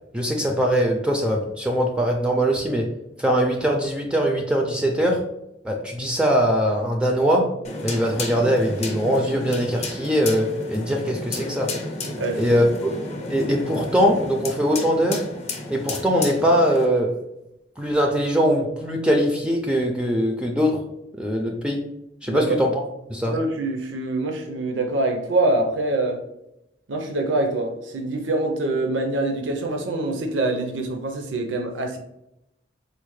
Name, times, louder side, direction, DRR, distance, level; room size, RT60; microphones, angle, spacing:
voice 1, 0.1-2.9 3.2-5.2 5.6-7.5 7.8-11.7 12.4-12.9 13.3-15.2 15.7-17.2 17.8-20.9 21.2-21.8 22.2-22.8 23.1-23.3, equal, 5° right, 1 dB, 0.3 m, -21 dB
sound 1, 7.6-16.8, left 2 dB, 40° left, 0.6 m, -32 dB
voice 2, 12.2-12.6 22.3-22.6 23.3-26.2 26.9-32.0, right 2 dB, 90° right, 3 dB, 0.6 m, -25 dB
4.1 x 2.1 x 3.1 m, 0.85 s
head